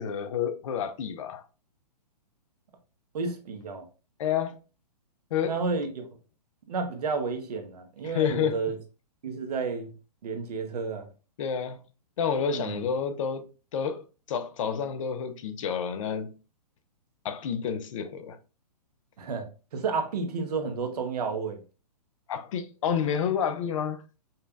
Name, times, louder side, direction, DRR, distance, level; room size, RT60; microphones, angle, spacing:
voice 1, 0.0-1.4 4.2-4.6 5.3-5.6 8.0-8.6 11.4-11.8 12.2-16.3 17.2-18.4 22.3-24.0, left 7 dB, 50° left, 0.5 m, -29 dB
voice 2, 3.1-3.8 5.4-6.1 6.7-8.8 9.2-9.9 10.2-11.1 12.5-12.8 19.2-21.6, right 4 dB, 65° right, 1.0 m, -31 dB
5.4 x 2.2 x 2.5 m
hypercardioid pair, 135°, 21 cm